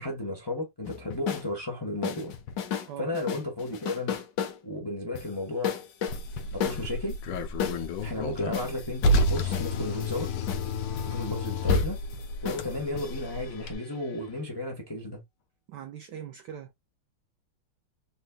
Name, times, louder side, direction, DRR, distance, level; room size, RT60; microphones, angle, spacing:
voice 1, 0.0-2.3 3.0-4.2 4.6-5.7 6.5-7.2 8.0-10.3 11.0-12.0 12.4-15.2, left 1 dB, 20° left, 0.8 m, -33 dB
sound 1, 0.8-1.5 2.0-2.9 3.1-4.6 5.1-5.3 5.6-7.8 8.5-14.2, left 8 dB, 65° left, 1.3 m, -35 dB
Car, 6.1-13.7, left 1 dB, 85° left, 1.6 m, -30 dB
voice 2, 15.7-16.9, right 9 dB, 75° right, 1.0 m, -41 dB
4.1 x 3.4 x 2.3 m
omnidirectional pair, 2.3 m